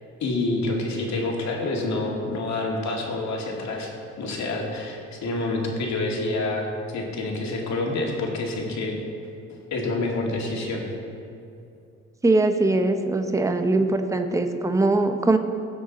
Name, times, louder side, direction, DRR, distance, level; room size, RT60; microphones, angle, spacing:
voice 1, 0.2-3.9 4.2-6.7 6.9-9.0 9.7-10.8, left 2 dB, 65° left, -1 dB, 2.2 m, -27 dB
voice 2, 12.2-15.4, right 2 dB, 10° right, 7 dB, 0.8 m, -21 dB
17.0 x 6.6 x 4.1 m, 2.5 s
cardioid pair, 90°, 30 cm